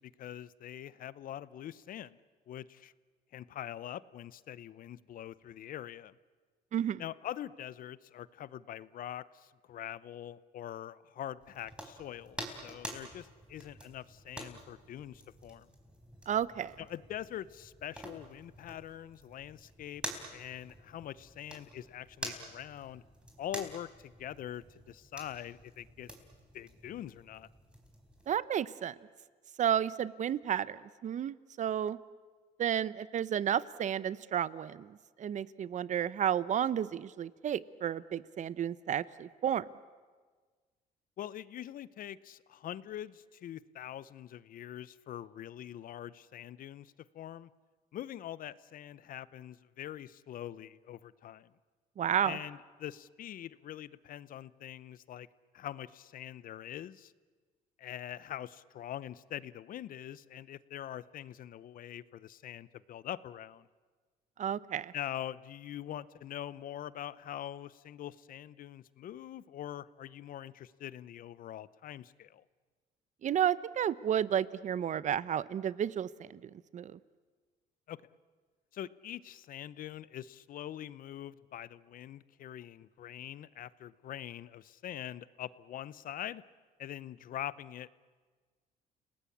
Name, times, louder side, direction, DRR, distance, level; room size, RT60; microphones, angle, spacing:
voice 1, 0.0-2.2 2.5-2.9 3.3-6.2 7.0-15.7 16.8-20.0 20.3-23.0 23.4-26.1 26.5-27.5 41.2-47.5 47.9-51.5 52.2-55.3 55.5-57.1 57.8-63.7 64.9-72.4 77.9-78.0 78.7-86.4 86.8-88.0, left 11 dB, 55° left, 18 dB, 0.7 m, -44 dB
voice 2, 6.7-7.0 16.3-16.8 28.3-29.0 29.6-32.0 32.6-39.6 52.0-52.4 64.4-64.9 73.2-76.4 76.7-77.0, right 9 dB, 45° right, 18 dB, 0.8 m, -32 dB
sound 1, 11.4-28.4, equal, 5° right, 4.1 m, -48 dB
29.5 x 18.5 x 8.5 m, 1.5 s
cardioid pair, 110°, 17 cm